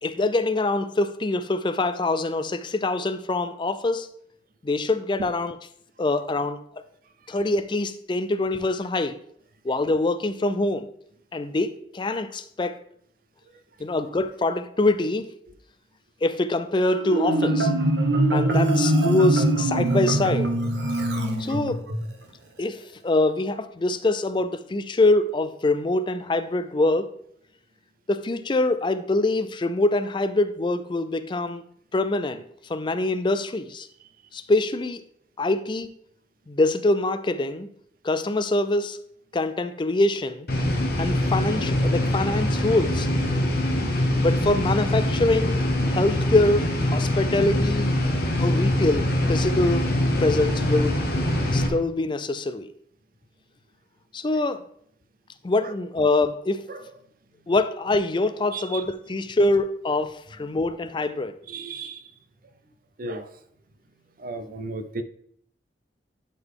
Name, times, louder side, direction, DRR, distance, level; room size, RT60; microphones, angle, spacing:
voice 1, 0.0-4.1 4.6-5.6 6.0-6.8 7.3-9.2 9.6-10.9 11.3-12.8 13.8-15.3 16.2-17.7 18.3-20.5 21.4-21.8 22.6-27.1 28.1-31.6 31.9-32.4 32.7-33.9 34.3-35.0 35.4-35.9 36.5-37.7 38.0-39.0 39.3-40.5 41.0-43.1 44.2-45.6 45.9-47.9 48.4-49.9 50.2-51.0 51.5-52.7 54.1-54.6 55.4-56.7 57.5-61.4, left 2 dB, 25° left, 0.4 m, -24 dB
Marimba xylophone, 16.9-22.0, right 1 dB, 75° right, 1.1 m, -22 dB
sound 1, 40.5-51.7, left 1 dB, 55° left, 1.1 m, -23 dB
voice 2, 58.5-58.8 61.5-62.0 63.0-63.3 64.2-65.0, right 3 dB, 50° right, 0.5 m, -34 dB
11.0 x 3.9 x 3.6 m
head